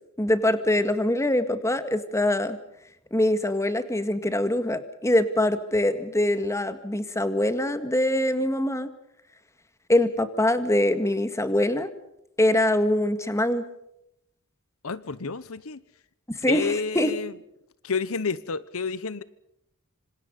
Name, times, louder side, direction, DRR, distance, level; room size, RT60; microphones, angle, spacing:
voice 1, 0.2-2.6 3.1-8.9 9.9-11.9 12.4-13.7 16.3-17.1, left 1 dB, 15° left, 10 dB, 1.9 m, -23 dB
voice 2, 14.8-15.8 16.5-17.3 17.8-19.2, left 4 dB, 75° left, 17 dB, 1.0 m, -30 dB
26.5 x 26.5 x 5.3 m, 0.80 s
head